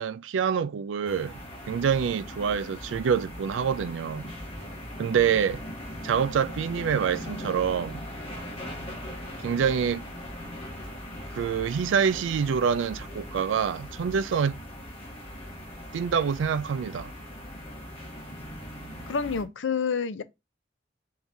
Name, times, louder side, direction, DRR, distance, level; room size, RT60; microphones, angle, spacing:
voice 1, 0.0-1.3 1.7-4.3 5.0-5.6 6.0-8.0 9.4-10.1 11.3-14.6 15.9-17.1, right 7 dB, 80° right, 0.3 m, -26 dB
sound 1, 1.0-19.4, equal, 35° left, 1.4 m, -40 dB
voice 2, 19.1-20.2, left 6 dB, 85° left, 0.5 m, -28 dB
4.6 x 3.8 x 2.7 m
head